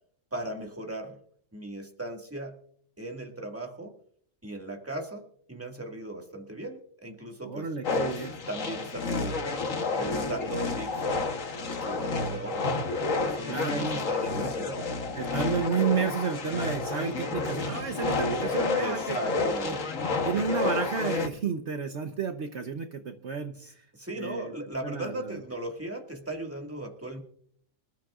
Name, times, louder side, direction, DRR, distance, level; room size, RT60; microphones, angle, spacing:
voice 1, 0.3-1.2 1.5-2.6 3.0-3.9 4.4-7.7 8.5-9.4 9.9-12.6 13.2-14.9 18.2-18.4 18.8-19.8 23.6-27.2, right 1 dB, 10° right, 2 dB, 1.9 m, -38 dB
voice 2, 7.4-8.3 13.5-14.0 15.1-19.8 20.2-23.9 24.2-24.5 24.8-25.4, right 6 dB, 55° right, 6 dB, 1.2 m, -31 dB
sound 1, 7.8-21.3, left 3 dB, 70° left, 1.6 m, -30 dB
26.5 x 13.5 x 2.5 m, 0.62 s
omnidirectional pair, 1.4 m